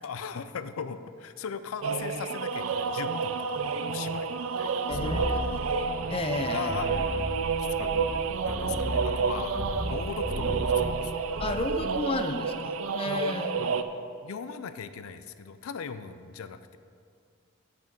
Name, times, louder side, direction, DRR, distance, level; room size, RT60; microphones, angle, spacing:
voice 1, 0.0-5.9 6.5-7.0 7.6-7.9 8.5-11.7 14.2-16.8, left 6 dB, 90° left, 12 dB, 0.4 m, -39 dB
sound 1, 1.8-13.8, right 5 dB, 75° right, 0.4 m, -30 dB
voice 2, 4.9-5.6 6.1-6.7 11.4-13.6, left 3 dB, 25° left, 8 dB, 0.4 m, -32 dB
sound 2, 4.9-6.4 6.7-10.0 10.2-10.8 11.2-11.7, equal, 40° right, 1.7 m, -34 dB
8.8 x 6.6 x 5.2 m, 2.2 s
head